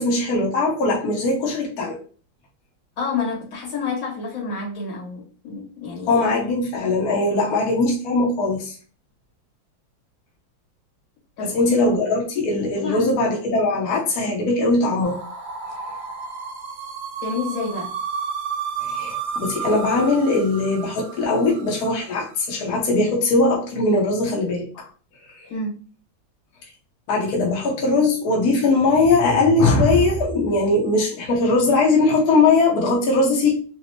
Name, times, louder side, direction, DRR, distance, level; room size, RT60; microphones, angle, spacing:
voice 1, 0.0-2.0 6.1-8.7 11.4-15.2 18.8-24.9 25.4-25.5 27.1-33.5, left 3 dB, 60° left, 1.3 m, -20 dB
voice 2, 3.0-6.1 7.4-7.5 11.4-11.8 12.8-13.1 17.2-17.9 25.5-25.8, left 4 dB, 75° left, 2.2 m, -29 dB
sound 1, 15.0-22.0, right 6 dB, 80° right, 1.4 m, -32 dB
4.1 x 2.1 x 2.9 m
omnidirectional pair, 2.1 m